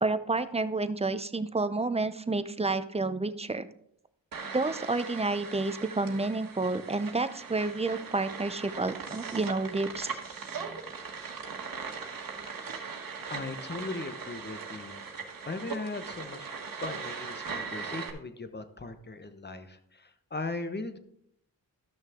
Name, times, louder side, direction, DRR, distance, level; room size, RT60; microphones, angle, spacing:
voice 1, 0.0-3.7 4.5-10.2, right 3 dB, 15° right, 12 dB, 0.6 m, -30 dB
sound 1, 4.3-18.1, right 5 dB, 65° right, 1.5 m, -40 dB
voice 2, 13.3-21.0, left 3 dB, 30° left, 9 dB, 1.0 m, -39 dB
13.0 x 6.3 x 3.7 m, 0.72 s
cardioid pair, 65°, 37 cm